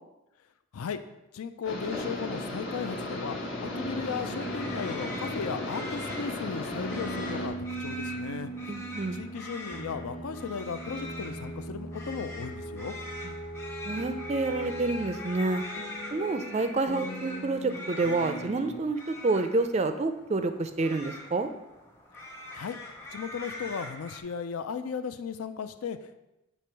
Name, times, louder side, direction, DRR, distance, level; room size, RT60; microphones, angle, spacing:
voice 1, 1.3-8.5 9.1-13.0 22.2-22.8 23.1-26.2, left 6 dB, 80° left, 10 dB, 0.4 m, -36 dB
sound 1, 1.6-7.5, left 2 dB, 65° left, 1.3 m, -35 dB
sound 2, 2.9-18.8, right 2 dB, 40° left, 1.0 m, -40 dB
sound 3, 4.4-24.2, left 1 dB, 10° left, 0.7 m, -43 dB
voice 2, 8.7-9.2 13.2-13.3 13.8-15.6 16.1-21.5, right 3 dB, 30° right, 8 dB, 0.4 m, -28 dB
8.5 x 3.0 x 4.5 m, 0.95 s
head